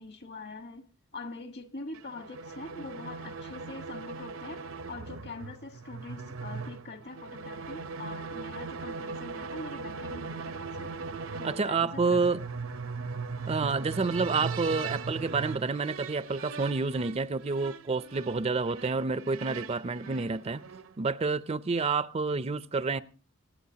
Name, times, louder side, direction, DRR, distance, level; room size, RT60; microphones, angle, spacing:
voice 1, 0.0-11.0 11.4-12.2 13.6-13.9 20.0-20.5, left 3 dB, 55° left, 1.5 m, -44 dB
sound 1, 1.9-21.0, right 4 dB, 70° right, 0.7 m, -39 dB
voice 2, 11.4-12.4 13.5-20.6 21.0-23.0, right 4 dB, 30° right, 0.5 m, -29 dB
27.0 x 9.0 x 2.8 m
head